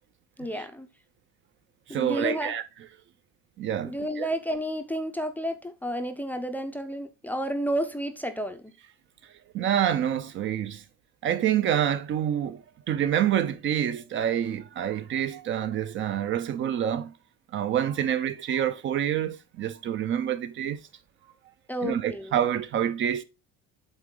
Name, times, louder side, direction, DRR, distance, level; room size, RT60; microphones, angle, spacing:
voice 1, 0.4-0.9 1.9-2.5 3.8-8.7 21.7-22.4, equal, 5° left, 0.5 m, -31 dB
voice 2, 1.9-2.6 3.6-4.3 9.5-10.8 11.2-17.1 17.5-20.8 21.8-23.2, right 10 dB, 40° right, 0.5 m, -27 dB
8.1 x 3.7 x 3.8 m
cardioid pair, 150°, 29 cm